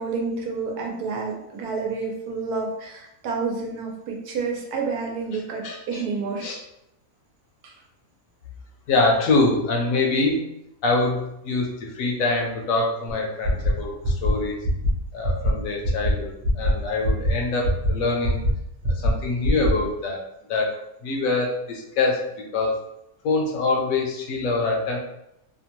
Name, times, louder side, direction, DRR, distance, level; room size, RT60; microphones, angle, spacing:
voice 1, 0.0-6.5 7.6-7.8, right 4 dB, 85° right, 0 dB, 1.2 m, -29 dB
voice 2, 8.9-10.4 10.8-14.6 15.1-18.4 19.0-20.2 20.5-20.7 21.0-22.8 23.2-25.0, left 3 dB, 70° left, 0 dB, 0.9 m, -24 dB
sound 1, 13.4-13.7 14.0-14.3 14.6-14.9 15.2-15.5 15.8-16.1 16.4-16.7 17.0-17.3 17.6-17.9 18.2-18.5 18.8-19.1 19.4-19.7, equal, 55° right, 0.8 m, -21 dB
2.8 x 2.2 x 2.9 m, 0.82 s
omnidirectional pair, 1.6 m